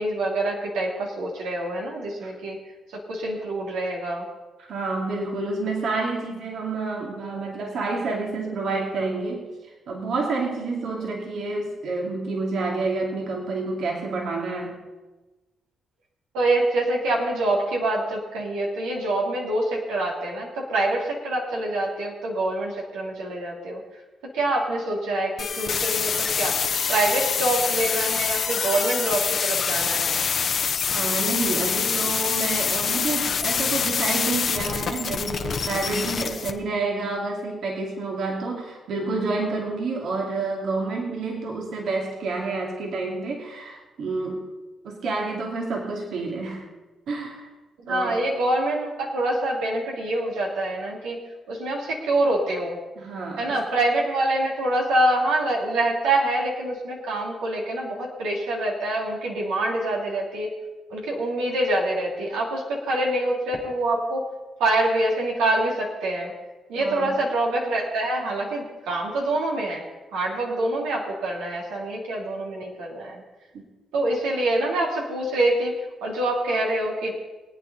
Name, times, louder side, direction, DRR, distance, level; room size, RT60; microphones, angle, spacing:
voice 1, 0.0-2.6 2.9-4.2 16.3-23.8 24.3-26.6 26.9-30.2 36.3-36.4 47.8-51.2 51.5-52.8 53.4-60.5 60.9-64.2 64.6-66.3 66.7-69.8 70.1-73.2 73.9-75.7 76.0-77.1, right 1 dB, 85° right, -2 dB, 2.8 m, -25 dB
voice 2, 4.6-9.5 9.9-14.7 30.9-44.4 44.8-46.6 47.1-47.5 47.9-48.2 53.0-53.6 66.8-67.1 73.5-73.6, right 3 dB, 70° right, -1 dB, 2.6 m, -29 dB
sound 1, 25.4-36.5, left 6 dB, 60° left, 1.2 m, -25 dB
23.0 x 9.0 x 4.1 m, 1.2 s
supercardioid pair, 55°, 0 cm